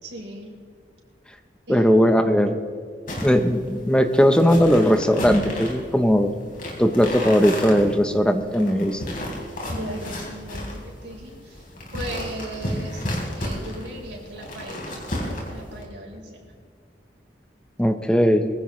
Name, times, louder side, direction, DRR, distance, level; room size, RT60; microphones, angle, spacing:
voice 1, 0.0-0.5 1.7-2.0 9.7-11.6 11.9-15.0 15.5-16.5, right 1 dB, 80° right, -1 dB, 3.8 m, -37 dB
voice 2, 1.7-2.6 3.2-6.3 6.8-9.2 17.8-18.5, equal, 5° left, 7 dB, 0.8 m, -18 dB
sound 1, 3.1-15.8, left 1 dB, 50° left, 3.8 m, -33 dB
22.5 x 16.0 x 3.2 m, 2.1 s
head